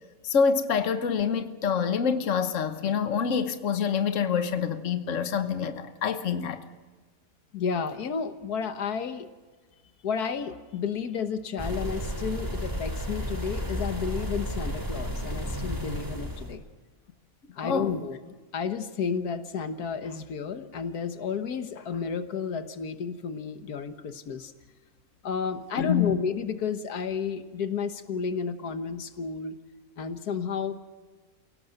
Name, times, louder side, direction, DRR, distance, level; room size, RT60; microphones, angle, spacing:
voice 1, 0.2-6.6 17.6-17.9 25.8-26.2, left 6 dB, 55° left, 9 dB, 1.5 m, -26 dB
voice 2, 7.5-9.3 10.0-16.6 17.6-18.2 18.5-24.5 25.2-29.6 30.0-30.7, left 6 dB, 85° left, 9 dB, 1.7 m, -32 dB
sound 1, 11.6-16.5, equal, 15° right, 2.8 m, -32 dB
28.5 x 17.5 x 6.6 m, 1.4 s
omnidirectional pair, 1.6 m